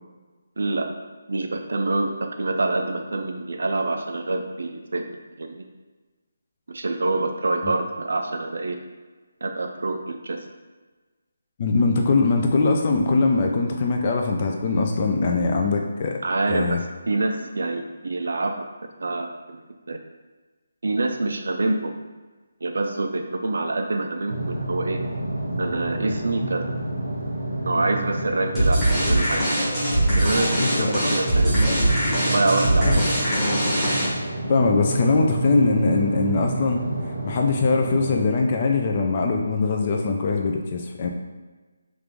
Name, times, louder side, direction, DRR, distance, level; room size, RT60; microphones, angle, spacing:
voice 1, 0.6-0.9 1.3-5.6 6.7-8.8 9.4-10.4 16.2-16.8 17.1-18.7 19.0-19.6 19.9-20.0 20.8-21.9 22.6-25.0 25.6-26.7 27.7-29.5 30.2-31.7 32.1-33.0, right 2 dB, 70° right, 5 dB, 0.4 m, -26 dB
voice 2, 11.6-16.2 16.5-16.8 30.6-31.0 31.7-31.8 32.8-33.1 34.5-36.8 37.2-41.1, left 3 dB, 30° left, 2 dB, 0.3 m, -22 dB
sound 1, 24.3-38.2, right 2 dB, 85° right, 1.0 m, -30 dB
sound 2, 28.6-34.3, right 1 dB, 5° left, 1.0 m, -21 dB
3.0 x 2.5 x 3.5 m, 1.3 s
hypercardioid pair, 170°, 0 cm